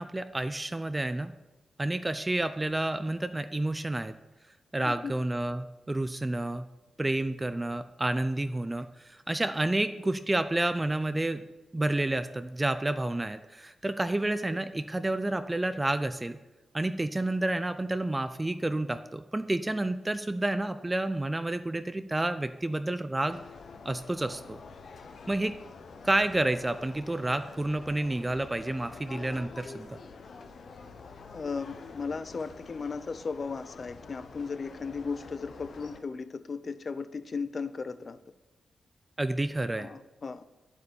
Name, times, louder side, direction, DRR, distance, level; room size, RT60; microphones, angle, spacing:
voice 1, 0.0-1.3 1.8-4.1 4.7-6.6 7.0-11.4 11.7-16.4 16.7-23.4 23.9-24.6 25.3-25.5 26.0-30.0 39.2-39.9, right 2 dB, 15° right, 11 dB, 0.4 m, -30 dB
sound 1, 23.3-36.0, left 4 dB, 65° left, 1.1 m, -47 dB
voice 2, 31.3-38.2 39.8-40.4, left 4 dB, 40° left, 14 dB, 0.6 m, -36 dB
9.3 x 8.2 x 7.0 m, 1.1 s
wide cardioid pair, 110°, 0 cm